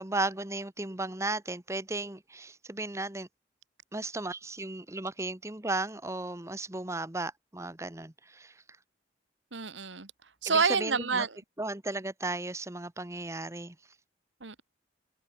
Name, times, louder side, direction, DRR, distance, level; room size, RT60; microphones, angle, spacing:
voice 1, 0.0-3.3 3.9-8.6 10.4-11.3 11.6-13.7, right 2 dB, 15° right, 1.2 m, -35 dB
voice 2, 9.5-10.1 10.4-11.4 14.4-14.6, right 5 dB, 90° right, 2.0 m, -28 dB
head